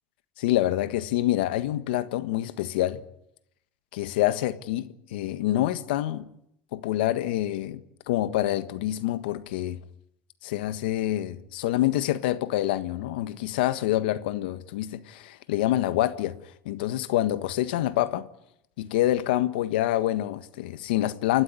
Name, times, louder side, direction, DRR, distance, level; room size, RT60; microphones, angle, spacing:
voice 1, 0.4-3.0 3.9-6.3 6.7-7.8 8.1-9.8 10.4-16.4 16.6-18.3 18.8-21.4, left 14 dB, 85° left, 1.5 m, -26 dB
29.5 x 13.0 x 9.6 m
supercardioid pair, 105°, 5 cm